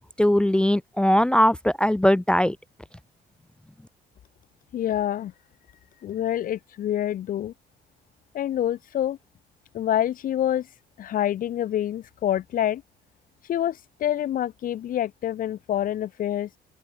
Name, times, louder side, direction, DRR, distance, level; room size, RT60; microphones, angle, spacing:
voice 1, 0.2-2.6, equal, 5° left, 0.4 m, -20 dB
voice 2, 4.7-5.3 6.0-7.5 8.3-9.2 9.7-10.7 11.0-12.8 13.5-16.5, left 11 dB, 55° left, 1.2 m, -26 dB
open air
cardioid pair, 110°, 17 cm